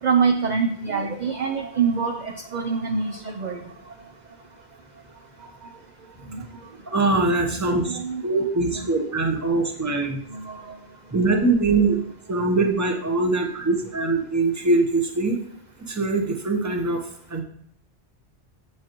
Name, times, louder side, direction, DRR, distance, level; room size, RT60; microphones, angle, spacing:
voice 1, 0.0-3.6 6.3-6.4 7.7-8.2 8.7-8.9 9.6-9.7 10.3-10.8, right 5 dB, 50° right, 4 dB, 0.6 m, -25 dB
voice 2, 6.9-10.2 11.1-12.0 12.3-15.4 15.9-17.0 17.3-17.4, right 3 dB, 15° right, 3 dB, 0.8 m, -22 dB
7.5 x 7.3 x 3.0 m, 0.64 s
omnidirectional pair, 1.2 m